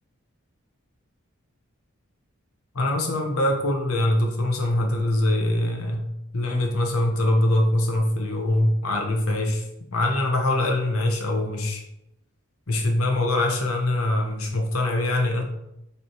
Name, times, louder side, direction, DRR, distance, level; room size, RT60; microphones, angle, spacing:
voice 1, 2.7-6.0 6.3-11.8 12.7-15.4, left 1 dB, 85° left, 2 dB, 1.0 m, -23 dB
7.0 x 3.4 x 4.5 m, 0.86 s
head